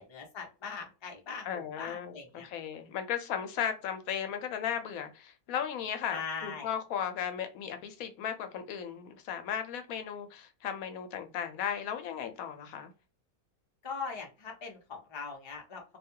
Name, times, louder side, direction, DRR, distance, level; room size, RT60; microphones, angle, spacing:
voice 1, 0.0-2.5 6.1-6.7 13.8-15.8, left 5 dB, 30° left, 0.6 m, -41 dB
voice 2, 1.4-2.2 2.4-12.9, left 8 dB, 75° left, 1.0 m, -36 dB
2.6 x 2.2 x 2.7 m
omnidirectional pair, 1.5 m